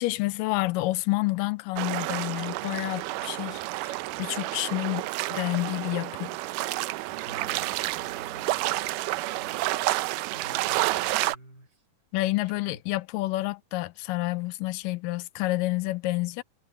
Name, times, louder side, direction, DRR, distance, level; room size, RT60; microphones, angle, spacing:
voice 1, 0.0-6.4 12.1-16.4, left 20 dB, 85° left, 2.2 m, -29 dB
sound 1, 1.8-11.3, right 18 dB, 80° right, 2.1 m, -30 dB
voice 2, 7.2-8.8 9.3-9.8 10.3-11.8 12.2-12.8, right 2 dB, 25° right, 6.6 m, -50 dB
omnidirectional pair, 3.9 m